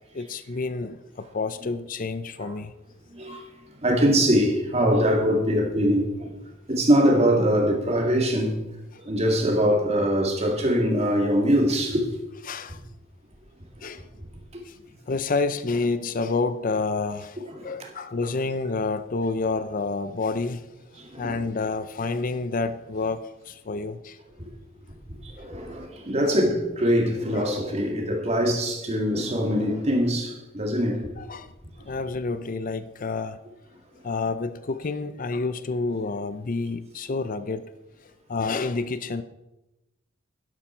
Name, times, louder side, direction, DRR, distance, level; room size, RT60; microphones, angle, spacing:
voice 1, 0.1-2.7 12.5-12.8 13.8-14.1 14.6-14.8 15.1-20.6 21.2-24.2 25.4-25.5 26.2-26.3 27.3-27.5 31.2-31.5 31.9-33.4 34.0-37.7 38.0-39.2, left 3 dB, 45° left, 0.5 m, -29 dB
voice 2, 3.1-3.5 3.8-6.4 6.7-8.6 9.0-12.0 17.5-17.9 21.0-21.4 25.1-31.1, equal, 30° right, 2.3 m, -23 dB
11.5 x 11.5 x 4.5 m
head